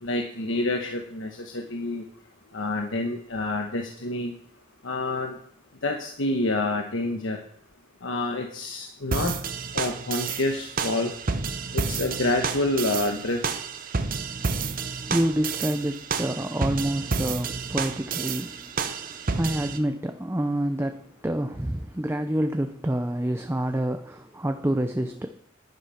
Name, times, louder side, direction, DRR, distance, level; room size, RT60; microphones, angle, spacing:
voice 1, 0.0-2.0 2.5-4.3 4.8-5.4 5.8-7.4 8.0-9.3 9.7-11.1 11.7-13.4, left 2 dB, 90° left, 3 dB, 1.3 m, -28 dB
sound 1, 9.1-19.8, right 4 dB, 45° right, 0.9 m, -30 dB
voice 2, 14.3-25.3, right 1 dB, 10° right, 7 dB, 0.6 m, -28 dB
11.0 x 9.6 x 5.8 m, 0.65 s
head